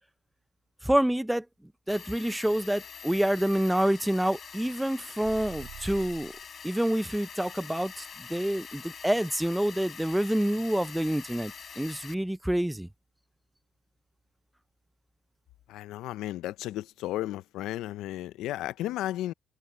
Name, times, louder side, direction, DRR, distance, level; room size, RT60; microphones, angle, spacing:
voice 1, 0.8-1.5 1.9-6.3 6.6-12.9, right 1 dB, 5° right, 0.6 m, -27 dB
sound 1, 1.9-12.1, left 6 dB, 40° left, 4.0 m, -45 dB
sound 2, 5.2-6.4, right 13 dB, 70° right, 5.7 m, -45 dB
voice 2, 15.7-19.3, left 14 dB, 75° left, 0.5 m, -34 dB
open air
cardioid pair, 105°, 0 cm